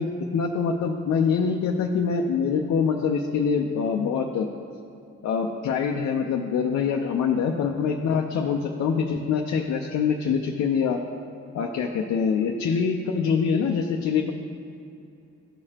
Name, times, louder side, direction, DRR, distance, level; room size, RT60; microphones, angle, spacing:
voice 1, 0.0-4.5 5.2-11.0 11.5-14.3, left 6 dB, 65° left, 2 dB, 0.6 m, -24 dB
13.5 x 4.9 x 2.9 m, 2.6 s
cardioid pair, 100°, 30 cm